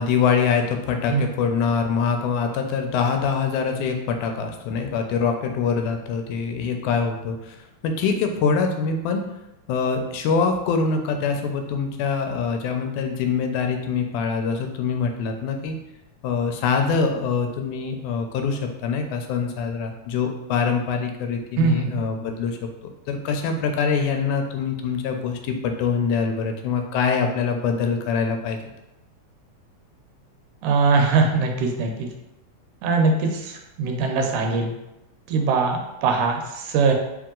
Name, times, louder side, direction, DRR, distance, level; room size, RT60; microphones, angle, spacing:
voice 1, 0.0-7.6 7.8-9.3 9.7-15.8 16.2-22.7 23.1-28.6, left 5 dB, 80° left, 5 dB, 2.0 m, -24 dB
voice 2, 21.6-22.0 30.6-32.1 32.8-34.7 35.3-36.9, right 4 dB, 80° right, 3 dB, 2.0 m, -21 dB
4.6 x 2.9 x 3.6 m, 0.93 s
omnidirectional pair, 3.5 m